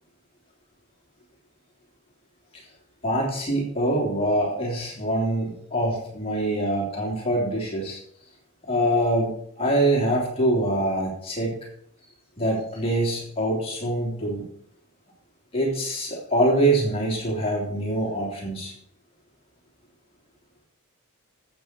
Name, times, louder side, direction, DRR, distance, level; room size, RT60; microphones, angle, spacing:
voice 1, 3.0-8.0 8.7-11.6 12.4-14.4 15.5-18.7, right 1 dB, 30° left, -3 dB, 3.2 m, -24 dB
13.5 x 8.4 x 4.5 m, 0.64 s
head